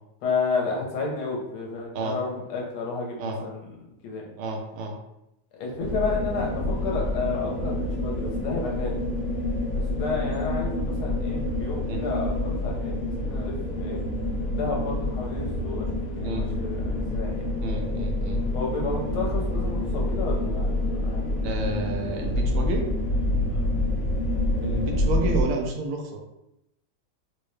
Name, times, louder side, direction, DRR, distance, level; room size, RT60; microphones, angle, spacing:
voice 1, 0.2-3.6 4.0-4.3 5.5-9.0 9.7-14.0 14.5-17.5 18.5-20.7 21.0-21.2 23.5-23.7, left 4 dB, 75° left, -2 dB, 1.6 m, -31 dB
voice 2, 4.4-5.0 11.9-12.0 16.2-16.4 17.6-18.4 21.4-22.9 24.6-26.2, right 2 dB, 85° right, 1 dB, 1.5 m, -30 dB
sound 1, 5.8-25.4, left 1 dB, 40° left, 0.8 m, -27 dB
4.2 x 2.2 x 3.2 m, 0.86 s
omnidirectional pair, 2.4 m